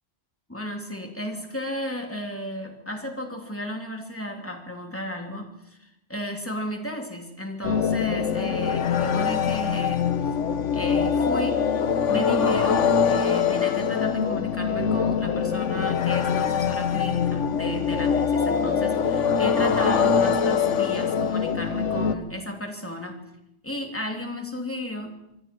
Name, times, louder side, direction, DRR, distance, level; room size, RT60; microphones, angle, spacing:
voice 1, 0.5-10.3 10.7-11.7 12.1-23.3 23.6-25.2, equal, 10° left, 3 dB, 2.8 m, -34 dB
sound 1, 7.6-22.1, left 7 dB, 90° left, 1.3 m, -23 dB
25.0 x 24.0 x 4.5 m, 0.84 s
omnidirectional pair, 1.2 m